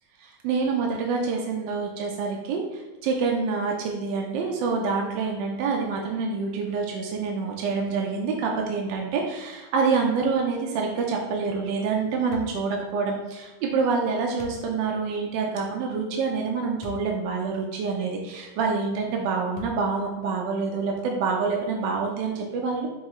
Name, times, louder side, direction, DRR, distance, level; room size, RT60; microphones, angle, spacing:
voice 1, 0.2-22.9, right 4 dB, 75° right, 0 dB, 1.2 m, -27 dB
sound 1, 12.3-12.6 14.4-14.7 16.8-17.1 17.7-17.8 19.5-20.0, left 6 dB, 85° left, 1.5 m, -41 dB
5.4 x 2.9 x 3.0 m, 1.1 s
omnidirectional pair, 2.2 m